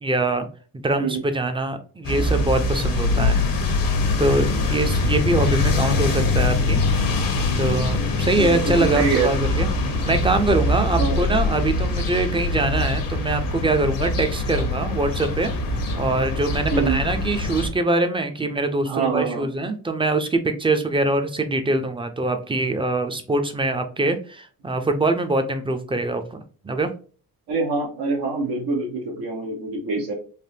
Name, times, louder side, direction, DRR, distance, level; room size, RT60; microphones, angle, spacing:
voice 1, 0.0-0.5 0.7-3.4 4.2-6.8 7.6-9.7 10.0-15.5 16.0-26.9, right 2 dB, 15° right, 7 dB, 0.5 m, -23 dB
sound 1, 2.0-17.7, left 2 dB, 70° left, 0.9 m, -23 dB
voice 2, 8.4-9.3 10.9-11.2 16.7-17.0 18.8-19.5 27.5-30.1, right 4 dB, 80° right, -1 dB, 1.0 m, -25 dB
3.4 x 2.1 x 2.7 m, 0.40 s
cardioid pair, 85°, 35 cm